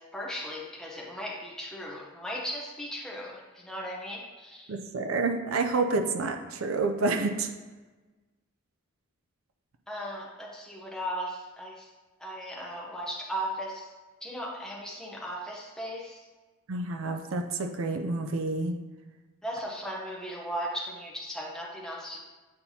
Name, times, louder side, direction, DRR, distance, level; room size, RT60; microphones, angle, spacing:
voice 1, 0.0-4.7 9.9-11.9 12.2-13.9 14.2-16.2 19.4-22.2, equal, 5° left, -3 dB, 0.7 m, -37 dB
voice 2, 4.7-7.5 16.7-18.7, right 3 dB, 65° right, 5 dB, 0.5 m, -29 dB
8.6 x 4.3 x 2.8 m, 1.3 s
head